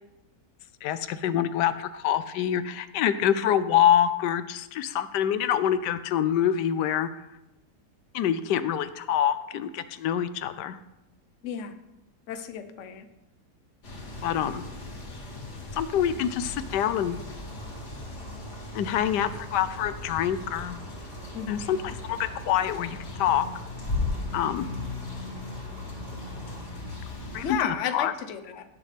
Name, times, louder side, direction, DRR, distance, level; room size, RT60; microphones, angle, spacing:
voice 1, 0.8-7.1 8.1-10.8 14.2-14.6 15.7-17.2 18.7-20.8 21.5-23.5 24.3-24.7 27.3-28.1, left 10 dB, 85° left, 13 dB, 1.2 m, -26 dB
voice 2, 11.4-11.7 12.3-13.0 21.3-21.7 27.4-28.6, left 8 dB, 55° left, 9 dB, 1.0 m, -32 dB
sound 1, 13.8-27.5, left 2 dB, 70° left, 2.8 m, -37 dB
sound 2, 16.6-26.6, right 2 dB, 60° right, 1.8 m, -48 dB
17.0 x 7.5 x 3.3 m, 0.96 s
omnidirectional pair, 1.8 m